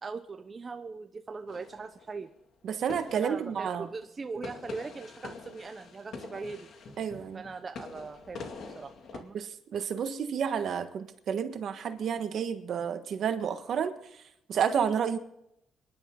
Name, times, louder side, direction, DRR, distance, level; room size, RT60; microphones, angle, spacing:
voice 1, 0.0-2.3 3.1-6.7 7.3-8.4 8.8-9.4, right 4 dB, 30° right, 6 dB, 0.8 m, -40 dB
sound 1, 1.5-2.3 2.9-3.9 4.4-9.2, left 4 dB, 60° left, 2.3 m, -45 dB
voice 2, 2.6-3.9 7.0-7.4 9.3-14.0 14.5-15.2, right 7 dB, 60° right, 8 dB, 1.5 m, -30 dB
26.5 x 11.0 x 3.9 m, 0.81 s
cardioid pair, 130°, 0 cm